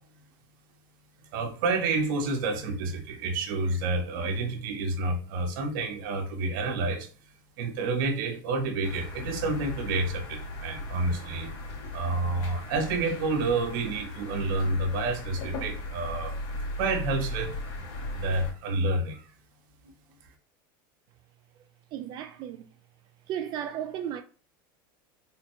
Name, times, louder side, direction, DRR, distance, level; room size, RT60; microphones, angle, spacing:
voice 1, 1.3-7.1 7.6-11.5 11.9-16.3 16.8-17.6 18.1-19.3, right 3 dB, 70° right, 1.1 m, -29 dB
sound 1, 8.8-18.5, left 2 dB, 55° left, 1.8 m, -37 dB
voice 2, 21.9-22.7 23.3-24.2, right 10 dB, 40° right, 0.3 m, -34 dB
3.6 x 2.2 x 4.4 m
supercardioid pair, 135°, 11 cm